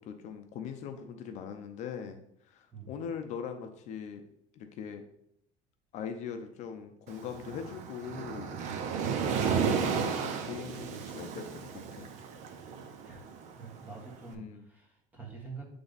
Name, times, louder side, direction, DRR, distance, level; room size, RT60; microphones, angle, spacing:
voice 1, 0.0-2.2 2.5-4.2 4.6-5.0 5.9-8.6 9.7-12.1 14.3-14.6, left 7 dB, 55° left, 6 dB, 0.6 m, -41 dB
Waves surf, 7.1-14.2, right 6 dB, 55° right, 0.7 m, -33 dB
voice 2, 13.6-15.7, right 4 dB, 10° right, -1 dB, 1.4 m, -46 dB
7.9 x 3.4 x 4.0 m, 0.75 s
cardioid pair, 145°, 15 cm